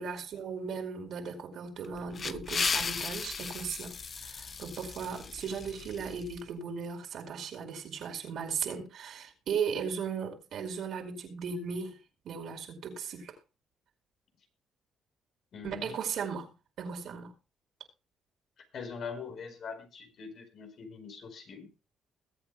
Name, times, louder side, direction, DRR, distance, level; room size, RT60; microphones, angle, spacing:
voice 1, 0.0-4.0 4.2-12.0 12.2-13.3 15.6-16.5 16.8-17.3, right 6 dB, 70° right, 4.8 m, -37 dB
sound 1, 1.8-6.4, left 5 dB, 40° left, 0.8 m, -36 dB
voice 2, 15.5-16.0 18.7-21.7, left 5 dB, 60° left, 4.5 m, -42 dB
21.5 x 8.7 x 2.3 m
cardioid pair, 90°, 0 cm